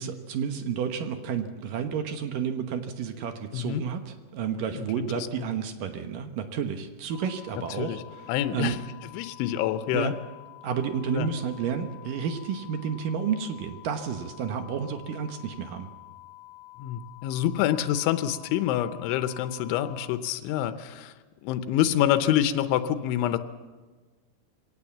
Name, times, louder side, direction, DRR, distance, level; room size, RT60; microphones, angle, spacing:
voice 1, 0.0-8.2 8.5-8.7 9.9-10.1 10.6-15.9, right 7 dB, 70° right, 7 dB, 2.1 m, -31 dB
voice 2, 4.8-5.5 7.8-8.0 8.3-8.8 9.1-10.1 11.1-11.3 16.8-21.1 21.4-23.4, left 11 dB, 85° left, 10 dB, 3.3 m, -27 dB
sound 1, 7.1-20.1, left 19 dB, 70° left, 2.7 m, -49 dB
23.0 x 18.0 x 7.3 m, 1.4 s
omnidirectional pair, 5.3 m